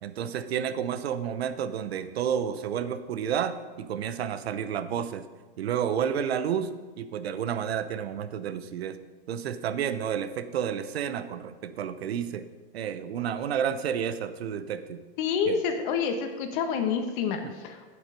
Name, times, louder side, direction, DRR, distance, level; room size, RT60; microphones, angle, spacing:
voice 1, 0.0-5.2 5.6-6.7 7.0-9.0 9.3-12.4 12.7-15.0 15.5-15.6 17.4-17.5, right 8 dB, 85° right, 11 dB, 0.8 m, -30 dB
voice 2, 15.2-18.0, left 6 dB, 55° left, 6 dB, 1.5 m, -28 dB
8.1 x 8.0 x 5.3 m, 1.3 s
hypercardioid pair, 125°, 30 cm